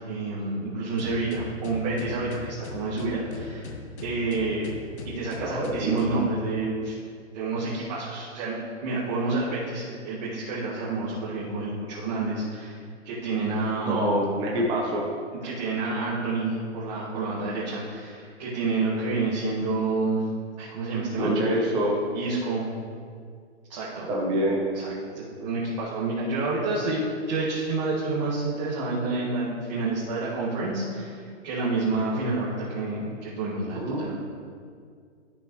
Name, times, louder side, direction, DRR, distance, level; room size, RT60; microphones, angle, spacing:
voice 1, 0.1-3.7 4.0-4.7 5.0-6.9 7.3-8.6 8.8-12.7 13.0-14.1 15.4-20.2 20.6-21.4 22.1-22.7 23.7-24.1 24.7-34.2, right 3 dB, 35° right, -8 dB, 1.9 m, -29 dB
sound 1, 1.0-6.3, left 4 dB, 60° left, 1.2 m, -39 dB
voice 2, 5.4-5.9 13.9-15.0 21.2-22.0 24.1-24.6 24.9-25.0 33.8-34.0, right 1 dB, 10° right, -3 dB, 0.8 m, -26 dB
13.0 x 5.8 x 3.1 m, 2.1 s
hypercardioid pair, 155°, 37 cm